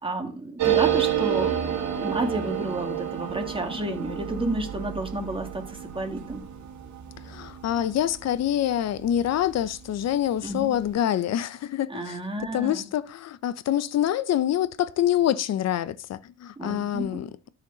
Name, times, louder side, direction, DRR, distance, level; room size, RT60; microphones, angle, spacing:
voice 1, 0.0-6.4 10.4-10.8 11.9-12.9 16.6-17.2, right 1 dB, 15° right, 2.0 m, -31 dB
sound 1, 0.6-9.7 10.0-10.1 10.3-10.9, right 11 dB, 70° right, 1.7 m, -30 dB
voice 2, 7.2-12.2 12.5-17.3, left 11 dB, 60° left, 0.7 m, -26 dB
12.5 x 4.4 x 3.9 m
cardioid pair, 90°, 30 cm